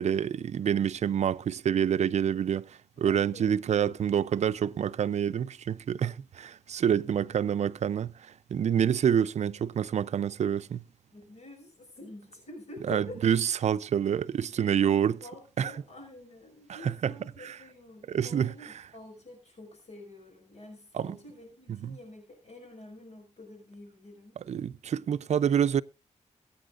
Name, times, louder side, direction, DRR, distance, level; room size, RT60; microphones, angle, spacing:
voice 1, 0.0-10.8 12.9-15.2 15.6-15.8 16.8-17.1 17.4-17.6 18.1-18.7 20.9-21.2 21.7-22.0 24.5-25.8, right 8 dB, 65° right, 0.5 m, -27 dB
voice 2, 3.0-3.9 6.8-7.4 11.1-13.2 14.6-14.8 15.2-24.4, left 2 dB, 60° left, 5.3 m, -48 dB
22.5 x 8.6 x 2.5 m
wide cardioid pair, 110°, 12 cm